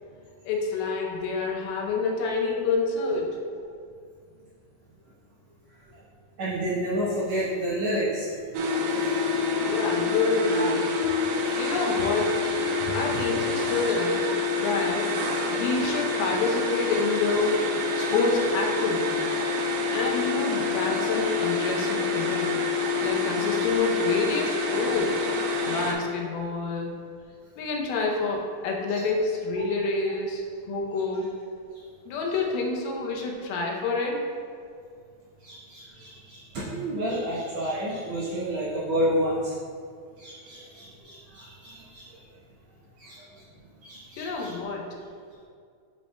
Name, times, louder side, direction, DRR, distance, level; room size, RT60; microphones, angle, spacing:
voice 1, 0.5-3.4 9.6-10.9 11.6-12.5 12.9-14.3 14.6-15.1 15.5-19.4 19.9-22.6 23.0-25.3 25.7-27.0 27.6-31.3 32.1-34.3 44.2-45.0, left 3 dB, 85° left, 0 dB, 2.5 m, -28 dB
voice 2, 6.4-8.3 12.8-12.9 28.9-29.0 35.4-39.5 40.2-42.0 43.0-43.2 43.8-44.5, equal, 65° right, -8 dB, 1.8 m, -30 dB
sound 1, 8.5-25.9, left 3 dB, 85° right, 2.3 m, -27 dB
10.0 x 4.2 x 2.2 m, 2.2 s
omnidirectional pair, 4.2 m